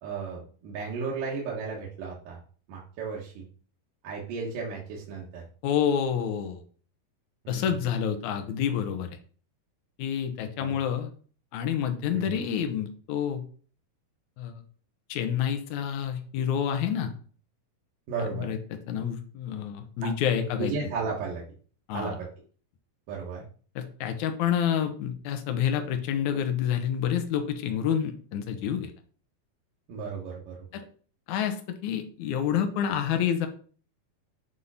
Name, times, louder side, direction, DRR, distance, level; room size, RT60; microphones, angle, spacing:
voice 1, 0.0-2.4 2.7-3.4 4.0-5.4 7.4-7.8 10.6-10.8 12.1-12.4 18.1-18.5 20.6-21.4 21.9-22.3 23.1-23.4 29.9-30.6, right 5 dB, 65° right, -4 dB, 2.8 m, -34 dB
voice 2, 5.6-6.6 7.5-9.2 10.0-11.1 11.5-13.4 14.4-14.5 15.1-17.1 18.2-18.6 18.9-20.9 21.9-22.2 23.8-28.9 30.7-30.8 31.3-33.5, left 8 dB, 70° left, 7 dB, 1.9 m, -28 dB
8.2 x 3.7 x 5.6 m, 0.43 s
omnidirectional pair, 4.4 m